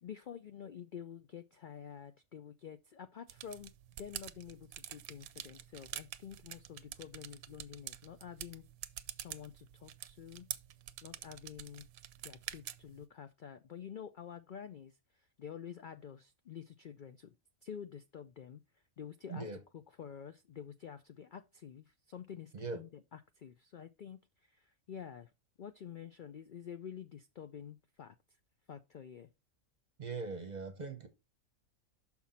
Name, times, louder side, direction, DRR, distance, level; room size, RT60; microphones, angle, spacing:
voice 1, 0.0-3.7 4.0-8.6 9.2-10.5 11.0-11.9 12.2-17.4 17.6-18.6 19.0-25.3 25.6-28.2 28.7-29.3, left 8 dB, 85° left, 0.4 m, -49 dB
sound 1, 3.3-13.0, right 12 dB, 90° right, 1.1 m, -47 dB
voice 2, 22.5-22.9 30.0-31.1, right 4 dB, 35° right, 0.8 m, -41 dB
6.1 x 5.9 x 4.1 m
omnidirectional pair, 1.5 m